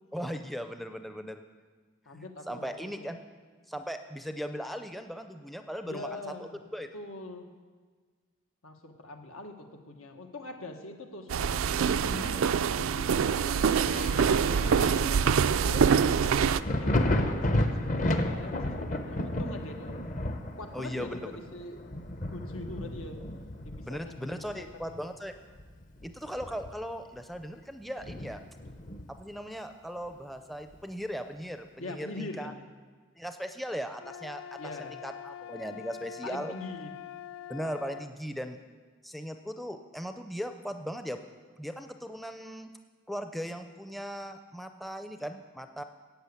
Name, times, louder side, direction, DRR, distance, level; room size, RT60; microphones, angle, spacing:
voice 1, 0.1-1.4 2.1-3.2 3.7-6.2 6.7-6.9 20.7-21.2 23.9-25.3 26.0-28.4 29.1-32.5 33.2-34.6 35.0-36.5 37.5-38.6 39.0-41.2 41.6-42.7 43.1-45.8, equal, ahead, 7 dB, 0.5 m, -38 dB
voice 2, 2.0-3.1 5.8-6.6 6.9-7.5 8.6-14.1 14.6-15.9 16.2-20.0 20.6-21.8 22.3-23.2 23.6-24.4 24.7-25.0 31.8-32.6 34.6-35.0 36.2-36.9, left 2 dB, 90° left, 4 dB, 1.5 m, -43 dB
sound 1, 11.3-16.6, right 6 dB, 75° right, 0.4 m, -25 dB
Thunder, 13.7-25.1 25.5-27.0 27.3-27.4 28.0-29.3 30.7-30.8, left 1 dB, 40° left, 0.8 m, -33 dB
sound 2, 34.0-38.1, left 11 dB, 65° left, 0.4 m, -44 dB
12.0 x 8.3 x 8.3 m, 1.5 s
head